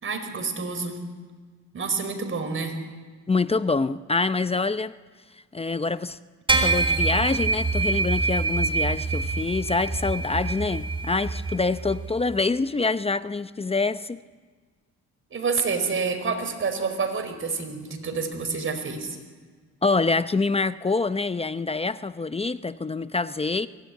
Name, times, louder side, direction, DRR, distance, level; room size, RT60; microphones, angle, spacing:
voice 1, 0.0-1.0 1.7-2.8 15.3-19.2, right 4 dB, 45° right, 5.0 m, -28 dB
voice 2, 3.3-4.9 5.5-6.2 6.5-14.2 19.8-23.7, left 3 dB, 20° left, 0.7 m, -26 dB
sound 1, 6.5-12.1, right 3 dB, 15° right, 3.5 m, -25 dB
23.5 x 18.0 x 9.5 m
cardioid pair, 90°, 30 cm